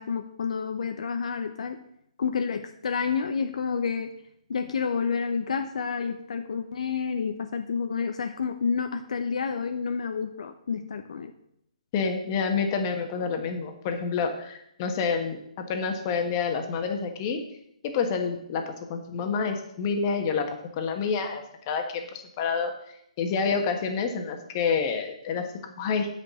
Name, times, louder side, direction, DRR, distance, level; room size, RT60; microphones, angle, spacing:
voice 1, 0.0-1.8 2.2-4.1 4.5-11.3, left 6 dB, 65° left, 7 dB, 0.8 m, -29 dB
voice 2, 11.9-17.4 17.8-20.5 20.8-22.7 23.2-26.1, left 5 dB, 35° left, 5 dB, 1.4 m, -28 dB
9.1 x 5.2 x 7.0 m, 0.75 s
hypercardioid pair, 150°, 4 cm